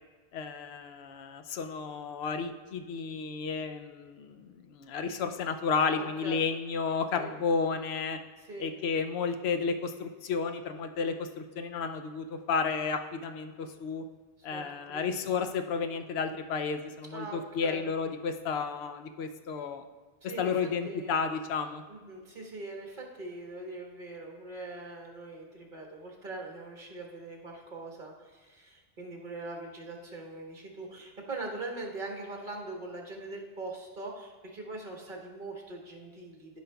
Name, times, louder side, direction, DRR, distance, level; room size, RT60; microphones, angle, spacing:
voice 1, 0.3-8.2 8.6-14.0 14.4-19.8 20.4-21.8, left 5 dB, 80° left, 7 dB, 0.8 m, -32 dB
voice 2, 6.0-6.4 7.1-7.3 8.4-8.7 14.4-15.1 17.1-17.8 20.2-20.5 20.8-21.1 21.9-36.6, right 2 dB, 55° right, 0 dB, 1.4 m, -42 dB
12.5 x 5.2 x 2.3 m, 1.4 s
omnidirectional pair, 1.1 m